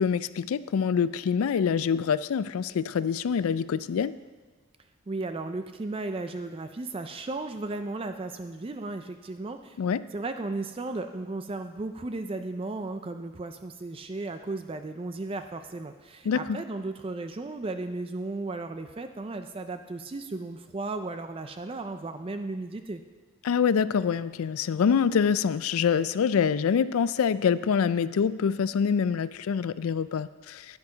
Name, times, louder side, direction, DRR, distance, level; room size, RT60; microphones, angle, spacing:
voice 1, 0.0-4.1 9.8-10.0 16.3-16.6 23.4-30.7, left 7 dB, 75° left, 16 dB, 0.3 m, -25 dB
voice 2, 5.1-9.8 10.1-23.0, right 2 dB, 25° right, 8 dB, 0.4 m, -35 dB
10.5 x 10.5 x 3.9 m, 1.3 s
head